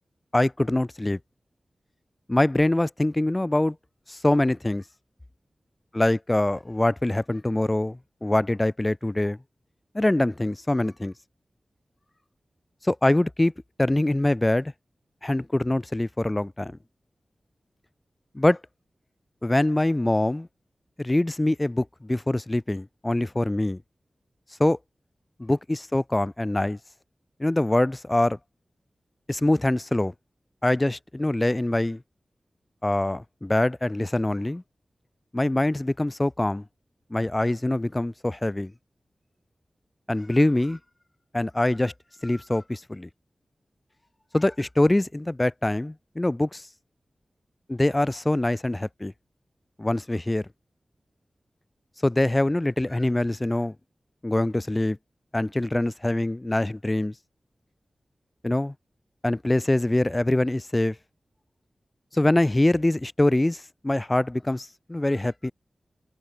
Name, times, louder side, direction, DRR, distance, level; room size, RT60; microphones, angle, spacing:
voice 1, 0.3-1.2 2.3-3.8 4.1-4.8 5.9-9.4 9.9-11.1 12.8-13.5 13.8-14.7 15.2-16.7 18.3-18.6 19.4-20.5 21.0-23.8 24.6-24.8 25.4-26.8 27.4-28.4 29.3-30.1 30.6-32.0 32.8-34.6 35.3-36.6 37.1-38.7 40.1-40.8 41.3-41.9 42.2-43.1 44.3-46.7 47.7-49.1 49.8-50.5 52.0-53.7 54.2-55.0 55.3-57.1 58.4-58.7 59.2-61.0 62.1-65.5, left 1 dB, 25° left, 1.1 m, -24 dB
cardioid pair, 45°, 0 cm